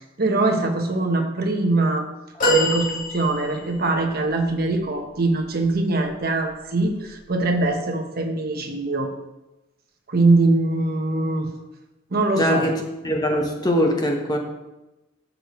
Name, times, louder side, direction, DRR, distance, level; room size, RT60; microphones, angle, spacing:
voice 1, 0.2-2.1 2.5-9.1 10.1-11.5 12.1-12.6, right 2 dB, 50° right, 3 dB, 1.1 m, -22 dB
sound 1, 2.4-3.8 4.5-4.6, equal, 45° left, 3.3 m, -23 dB
voice 2, 12.4-12.8 13.0-14.4, equal, 20° left, 1 dB, 1.2 m, -21 dB
13.0 x 6.7 x 3.1 m, 0.99 s
head